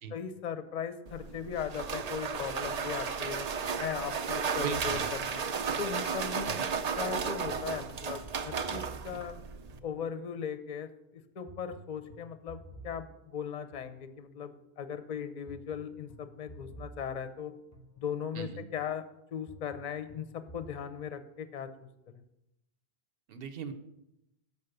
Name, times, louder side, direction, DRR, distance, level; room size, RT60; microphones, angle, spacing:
voice 1, 0.1-3.5 3.8-5.4 5.8-6.5 7.0-9.3 9.8-17.5 18.0-19.0 19.3-21.9, left 7 dB, 50° left, 10 dB, 0.6 m, -38 dB
sound 1, 1.1-9.8, right 6 dB, 50° right, 0.5 m, -34 dB
voice 2, 4.6-5.1 6.4-6.6 18.3-18.6 23.3-23.7, right 6 dB, 65° right, 10 dB, 1.0 m, -38 dB
sound 2, 7.5-10.5 11.5-14.6 15.5-18.5 19.5-20.8, right 2 dB, 15° left, 0.8 m, -52 dB
6.9 x 5.8 x 6.5 m, 0.86 s
omnidirectional pair, 1.0 m